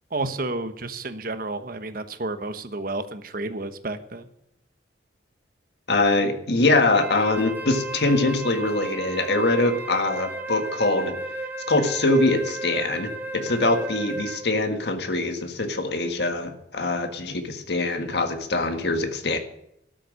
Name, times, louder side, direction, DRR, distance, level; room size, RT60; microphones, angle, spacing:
voice 1, 0.1-4.3, right 2 dB, 50° right, 9 dB, 1.2 m, -31 dB
voice 2, 5.9-11.1 11.7-19.4, left 2 dB, 65° left, 6 dB, 1.7 m, -23 dB
Wind instrument woodwind instrument, 6.9-14.5, right 2 dB, 10° right, 1.2 m, -34 dB
12.5 x 7.6 x 9.9 m, 0.75 s
head